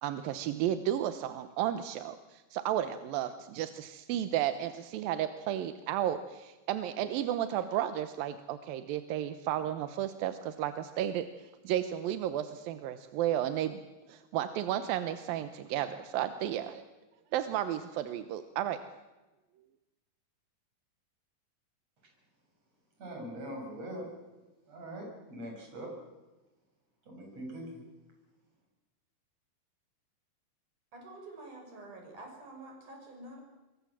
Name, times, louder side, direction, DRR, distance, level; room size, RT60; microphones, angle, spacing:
voice 1, 0.0-11.3 11.6-13.8 14.1-16.8 17.3-18.8, right 11 dB, 90° right, 10 dB, 2.7 m, -33 dB
voice 2, 23.0-24.1 24.7-25.9 27.0-27.8, right 1 dB, 45° right, 1 dB, 8.3 m, -42 dB
voice 3, 30.9-33.4, right 2 dB, 60° right, 1 dB, 7.7 m, -48 dB
26.5 x 23.0 x 7.5 m, 1.1 s
omnidirectional pair, 4.0 m